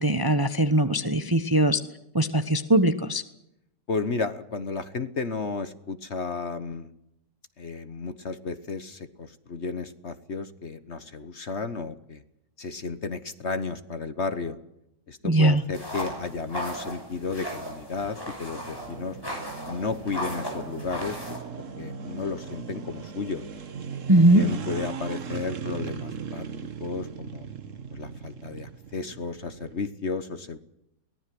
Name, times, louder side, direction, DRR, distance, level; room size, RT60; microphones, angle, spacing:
voice 1, 0.0-1.8 2.1-3.2 15.2-15.6 24.1-24.5, right 1 dB, 15° right, 10 dB, 0.9 m, -20 dB
voice 2, 3.9-6.9 7.6-12.2 12.6-14.6 15.1-19.2 19.7-21.4 21.8-23.4 24.3-26.5 26.8-27.5 27.9-30.6, left 4 dB, 45° left, 11 dB, 1.3 m, -33 dB
sound 1, 15.7-21.4, equal, 10° left, 6.2 m, -36 dB
sound 2, 18.5-29.9, right 6 dB, 50° right, 1.5 m, -38 dB
23.0 x 18.5 x 7.8 m, 0.81 s
omnidirectional pair, 1.9 m